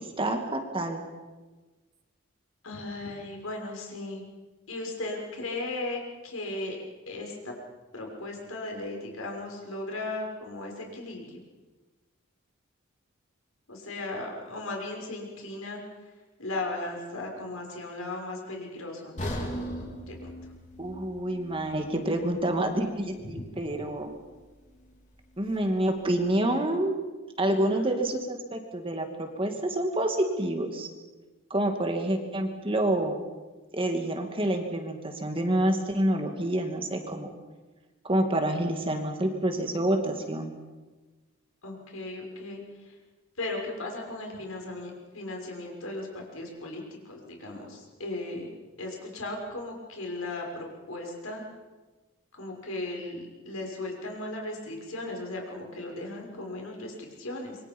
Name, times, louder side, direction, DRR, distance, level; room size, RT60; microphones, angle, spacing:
voice 1, 0.2-1.0 20.8-24.1 25.4-27.0 27.4-30.9 31.5-33.2 33.7-37.3 38.0-40.5, right 1 dB, 25° right, 4 dB, 2.4 m, -28 dB
voice 2, 2.6-4.2 4.7-6.8 7.1-7.5 7.9-11.4 13.7-15.8 16.4-19.5 20.1-20.3 23.3-23.4 27.5-27.9 41.6-42.9 43.4-48.5 48.8-51.4 52.3-57.6, left 2 dB, 85° left, 1 dB, 6.2 m, -37 dB
sound 1, 19.2-23.2 23.6-23.8 24.3-24.4, equal, 35° left, 3.9 m, -38 dB
26.5 x 24.0 x 5.5 m, 1.2 s
head